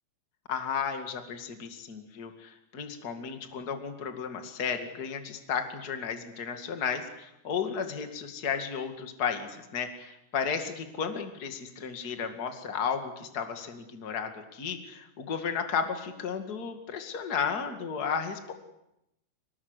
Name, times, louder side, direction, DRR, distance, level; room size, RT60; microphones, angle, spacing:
voice 1, 0.5-18.5, left 6 dB, 45° left, 6 dB, 1.3 m, -33 dB
24.0 x 20.5 x 8.2 m, 0.85 s
omnidirectional pair, 5.3 m